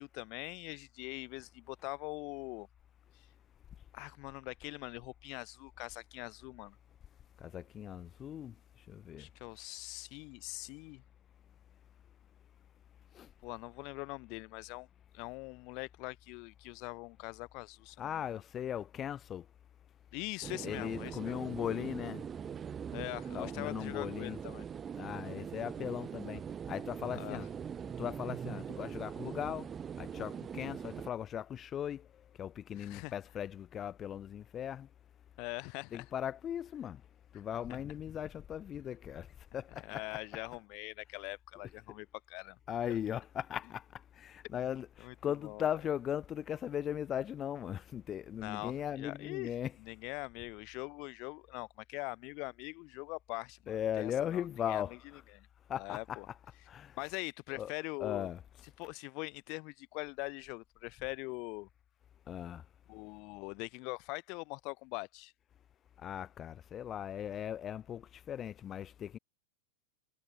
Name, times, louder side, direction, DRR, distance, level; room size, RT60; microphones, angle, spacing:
voice 1, 0.0-2.7 3.9-6.8 9.2-11.0 13.4-14.9 15.1-18.4 20.1-21.4 22.9-24.7 27.1-27.4 32.7-33.1 35.4-36.1 37.7-37.8 39.8-42.6 42.9-43.0 45.0-45.7 48.3-55.0 55.3-55.5 55.7-56.3 57.0-58.3 58.8-61.7 62.9-65.3, left 29 dB, 45° left, 0.8 m, -43 dB
voice 2, 7.4-8.5 8.9-9.3 13.2-13.3 18.0-19.4 20.6-22.2 23.3-24.4 25.0-26.4 26.7-27.5 28.0-29.7 30.0-32.0 32.4-34.9 35.9-37.0 37.3-39.3 39.5-40.2 42.7-43.8 44.2-49.7 53.7-55.2 55.7-56.2 56.7-56.9 57.5-57.7 58.0-58.4 62.3-62.6 66.0-69.2, left 9 dB, 25° left, 0.4 m, -38 dB
sound 1, 20.4-31.1, right 7 dB, 20° right, 0.9 m, -42 dB
figure-of-eight pair, 90°, 0 cm